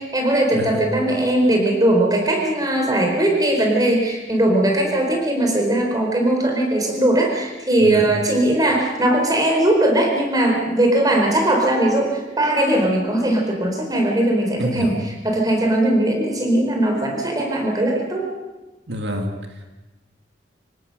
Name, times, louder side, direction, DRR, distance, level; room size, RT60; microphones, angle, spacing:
voice 1, 0.0-15.0 15.2-18.3, right 1 dB, 20° right, 1 dB, 4.3 m, -19 dB
voice 2, 0.5-0.8 7.8-8.1 14.6-15.0 18.9-19.8, equal, 80° right, 4 dB, 2.1 m, -28 dB
26.0 x 17.0 x 6.6 m, 1.1 s
head